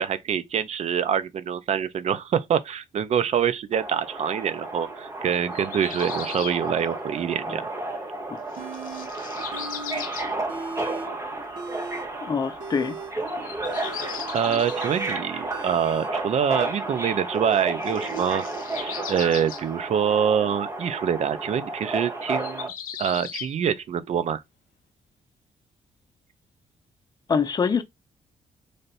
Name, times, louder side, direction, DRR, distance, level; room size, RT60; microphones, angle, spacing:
voice 1, 0.0-7.7 14.3-18.4 18.8-22.7 23.0-24.4, right 8 dB, 55° right, 0.5 m, -25 dB
Subway metro underground, 3.7-22.7, right 2 dB, 20° right, 1.0 m, -32 dB
sound 1, 5.3-6.6 8.0-8.1 8.5-10.3 11.5-11.6 13.3-14.9 17.5-19.6 22.2-23.5, left 9 dB, 80° left, 0.5 m, -38 dB
sound 2, 8.6-9.1 9.5-10.0 10.3-11.1 11.5-16.1, right 4 dB, 80° right, 1.5 m, -38 dB
voice 2, 12.2-13.0 27.3-27.8, left 6 dB, 30° left, 0.6 m, -25 dB
3.3 x 2.6 x 4.0 m
cardioid pair, 120°, 14 cm